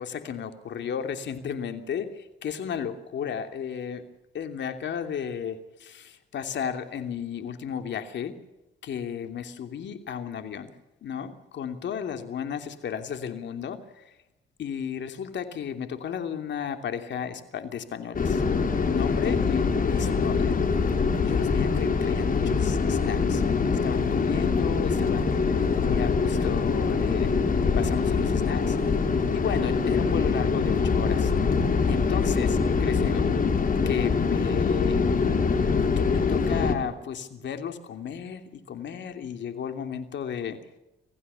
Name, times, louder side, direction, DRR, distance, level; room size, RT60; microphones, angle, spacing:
voice 1, 0.0-4.0 4.3-8.3 8.8-10.7 11.0-13.8 14.6-18.4 18.8-20.5 21.2-23.4 23.8-27.3 27.8-28.8 29.3-31.3 31.8-33.3 33.9-35.0 36.0-40.6, left 8 dB, 65° left, 7 dB, 2.9 m, -34 dB
sound 1, 18.1-36.7, left 5 dB, 45° left, 3.5 m, -24 dB
27.0 x 15.5 x 7.0 m, 0.94 s
cardioid pair, 90°, 20 cm